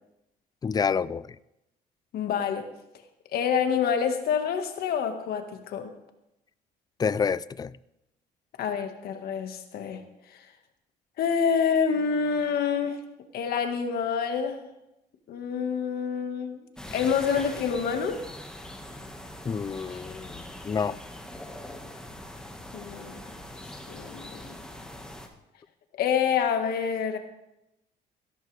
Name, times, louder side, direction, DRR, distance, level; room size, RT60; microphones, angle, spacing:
voice 1, 0.6-1.3 7.0-7.7 19.4-21.0, left 6 dB, 25° left, 0.4 m, -28 dB
voice 2, 2.1-2.7 3.3-5.9 8.6-10.0 11.2-13.0 13.3-14.6 15.3-16.7 16.9-18.2 22.7-23.2 23.9-24.5 25.9-27.2, left 7 dB, 65° left, 1.7 m, -27 dB
sound 1, 16.8-25.3, left 1 dB, 5° left, 1.6 m, -42 dB
17.0 x 13.5 x 3.4 m
cardioid pair, 110°, 17 cm